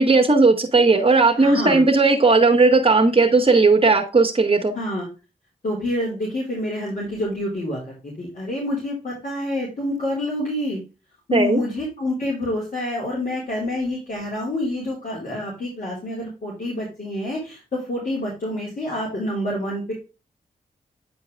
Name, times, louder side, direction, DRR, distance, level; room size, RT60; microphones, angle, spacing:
voice 1, 0.0-4.7 11.3-11.6, right 3 dB, 35° right, 0 dB, 1.6 m, -16 dB
voice 2, 1.4-1.8 4.7-5.1 5.6-10.8 11.3-19.9, left 1 dB, 60° left, -5 dB, 4.0 m, -27 dB
10.0 x 4.5 x 3.4 m, 0.30 s
cardioid pair, 50°, 15 cm